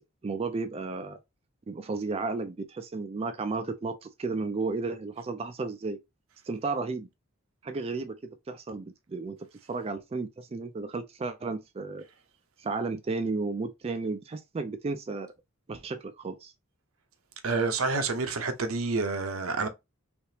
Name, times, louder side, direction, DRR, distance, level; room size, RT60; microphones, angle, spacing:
voice 1, 0.2-1.2 1.7-6.0 6.5-7.1 7.6-12.0 12.6-15.3 15.7-16.5, right 3 dB, 30° right, 0.4 m, -33 dB
voice 2, 17.4-19.7, right 3 dB, 85° right, 0.6 m, -28 dB
3.4 x 2.8 x 2.7 m
head